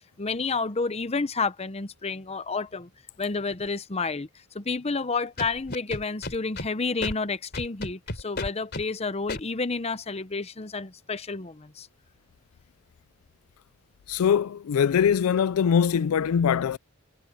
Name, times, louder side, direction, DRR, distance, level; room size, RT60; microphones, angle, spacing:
voice 1, 0.2-2.9 3.2-4.3 4.5-11.9, left 4 dB, 30° left, 0.8 m, -30 dB
Scratching (performance technique), 5.4-6.7 7.0-7.1 7.5-8.8 9.3-9.4, left 2 dB, 45° left, 3.7 m, -32 dB
voice 2, 14.1-16.8, left 7 dB, 75° left, 0.4 m, -22 dB
head